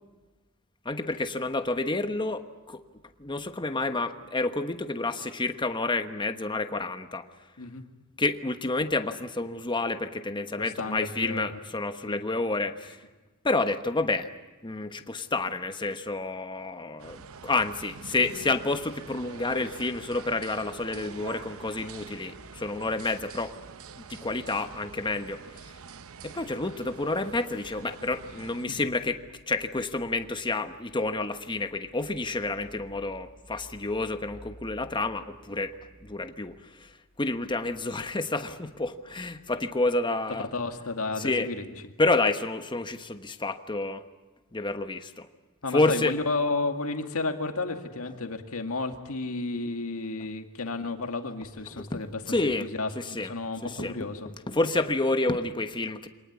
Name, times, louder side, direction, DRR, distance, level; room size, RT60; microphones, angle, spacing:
voice 1, 0.8-2.8 3.2-7.3 8.2-13.0 13.4-14.3 14.6-23.5 24.0-25.4 26.2-35.7 36.0-36.9 37.2-40.5 41.2-41.5 42.0-44.0 44.5-45.3 45.7-46.1 51.7-52.0 52.3-52.7 52.9-53.3 53.6-53.9 54.5-56.1, left 2 dB, 20° left, 8 dB, 1.2 m, -29 dB
voice 2, 10.8-11.4 12.1-12.2 28.7-28.8 40.4-41.6 45.6-54.3, left 3 dB, 70° left, 5 dB, 2.2 m, -32 dB
sound 1, 17.0-28.7, right 5 dB, 65° right, 0.8 m, -45 dB
26.0 x 19.0 x 9.6 m, 1.2 s
head